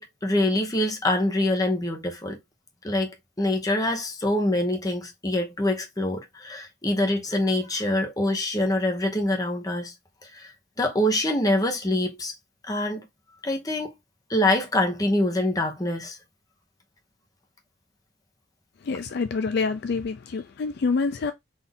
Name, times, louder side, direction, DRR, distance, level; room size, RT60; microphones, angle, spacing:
voice 1, 0.0-2.4 2.8-9.9 10.3-10.5 10.8-12.3 12.7-13.0 13.4-13.9 14.3-16.2, left 1 dB, 20° left, 0.9 m, -25 dB
voice 2, 18.8-21.3, left 4 dB, 55° left, 0.4 m, -27 dB
4.0 x 2.7 x 3.5 m
head